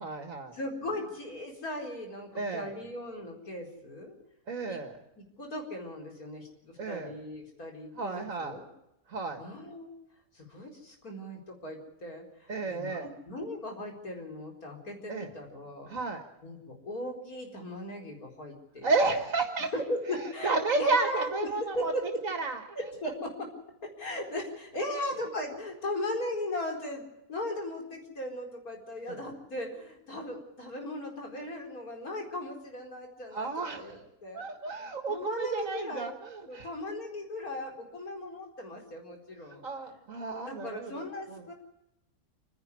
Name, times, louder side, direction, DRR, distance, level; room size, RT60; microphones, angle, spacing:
voice 1, 0.0-0.6 2.3-2.7 4.5-5.0 6.8-7.1 7.9-8.6 9.1-9.4 12.5-13.1 15.1-15.3 15.9-16.2 18.8-19.7 20.1-21.9 22.2-22.6 29.1-29.2 33.3-34.1 34.3-36.7 39.5-41.4, right 3 dB, 65° right, 5 dB, 2.2 m, -32 dB
voice 2, 0.5-4.2 4.7-4.8 5.4-8.7 9.4-9.9 10.3-15.9 16.4-18.9 19.9-21.5 21.7-22.0 22.7-23.5 23.8-34.5 35.1-36.1 36.5-39.6 40.4-41.5, left 1 dB, 85° left, 2 dB, 4.9 m, -38 dB
28.5 x 11.0 x 9.8 m, 0.86 s
omnidirectional pair, 1.5 m